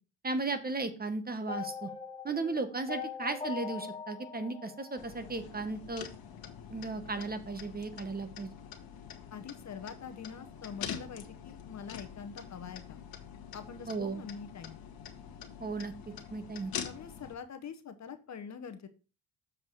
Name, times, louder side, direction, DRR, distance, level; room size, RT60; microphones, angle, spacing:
voice 1, 0.2-1.9 2.2-6.1 6.7-8.5 13.9-14.2 15.6-15.9 16.3-16.7, right 3 dB, 25° right, 9 dB, 1.1 m, -35 dB
sound 1, 1.5-5.7, left 6 dB, 10° left, 1.3 m, -41 dB
sound 2, 5.0-17.3, left 8 dB, 65° left, 1.3 m, -45 dB
voice 2, 9.3-13.0 13.5-14.8 16.8-18.9, left 6 dB, 45° left, 9 dB, 1.0 m, -44 dB
7.3 x 4.7 x 4.8 m, 0.35 s
cardioid pair, 80°, 39 cm